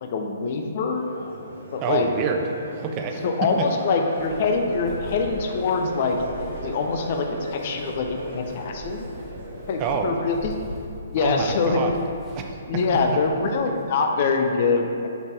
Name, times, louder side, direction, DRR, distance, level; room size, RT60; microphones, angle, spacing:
voice 1, 0.0-1.1 1.7-2.1 3.2-6.2 6.6-9.0 9.7-10.6 11.1-12.0 12.7-15.1, left 4 dB, 40° left, 3 dB, 0.5 m, -24 dB
Crowd, 0.9-11.1, right 1 dB, 55° right, 1.2 m, -37 dB
voice 2, 1.8-2.4 2.8-3.2 3.6-3.7 9.8-10.2 11.2-11.9 12.4-12.8, right 6 dB, 30° right, 4 dB, 0.4 m, -27 dB
Walk footsteps, 4.2-13.8, right 1 dB, 5° right, 0.9 m, -42 dB
5.4 x 4.0 x 4.5 m, 2.5 s
figure-of-eight pair, 125°, 0 cm